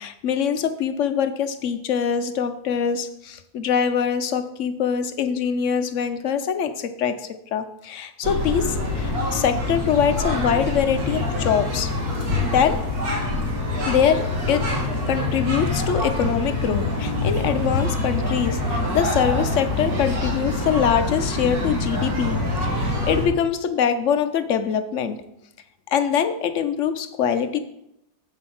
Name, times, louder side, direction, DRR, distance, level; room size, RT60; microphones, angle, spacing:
voice 1, 0.0-11.9 12.4-12.8 13.9-14.6 15.1-25.2 25.9-27.6, left 7 dB, 60° left, 9 dB, 0.8 m, -23 dB
sound 1, 8.2-23.3, left 2 dB, 65° right, 2.3 m, -25 dB
7.7 x 5.8 x 5.9 m, 0.80 s
omnidirectional pair, 1.8 m